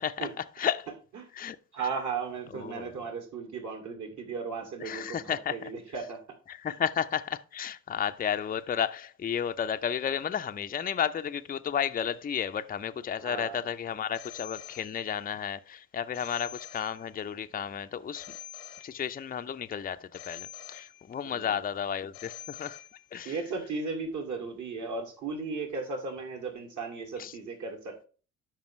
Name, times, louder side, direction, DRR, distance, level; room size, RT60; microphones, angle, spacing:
voice 1, 0.0-0.9 1.4-1.6 2.5-2.9 4.8-5.7 6.5-18.3 18.8-22.8 23.1-23.4 27.2-27.3, left 8 dB, 25° left, 0.6 m, -32 dB
voice 2, 0.9-1.3 1.7-6.2 6.7-6.9 13.2-13.6 21.2-21.6 23.2-28.1, right 4 dB, 50° right, 2.6 m, -36 dB
Telephone, 14.1-15.4 16.1-17.4 18.1-19.4 20.1-21.4 22.1-23.4, left 11 dB, 85° left, 1.1 m, -46 dB
12.0 x 5.2 x 3.2 m
hypercardioid pair, 50°, 37 cm